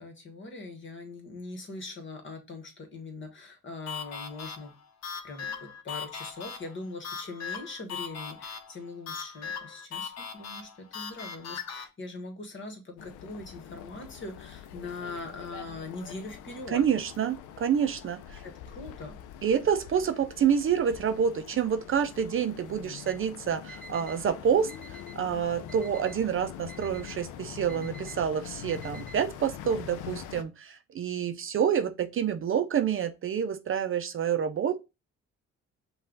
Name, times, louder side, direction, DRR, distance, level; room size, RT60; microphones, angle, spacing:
voice 1, 0.0-4.7 5.2-16.8 18.4-19.1, left 3 dB, 40° left, 1.4 m, -41 dB
sound 1, 3.9-11.9, left 6 dB, 60° left, 0.8 m, -39 dB
sound 2, 13.0-30.4, left 10 dB, 90° left, 0.5 m, -44 dB
voice 2, 16.7-18.4 19.4-34.8, right 8 dB, 45° right, 0.5 m, -28 dB
Alarm, 23.0-23.2 23.7-24.2 24.7-25.2 25.7-26.2 26.7-27.2 27.7-28.2 28.7-29.2, right 3 dB, 5° left, 1.8 m, -48 dB
5.4 x 2.4 x 3.8 m
cardioid pair, 90°, 30 cm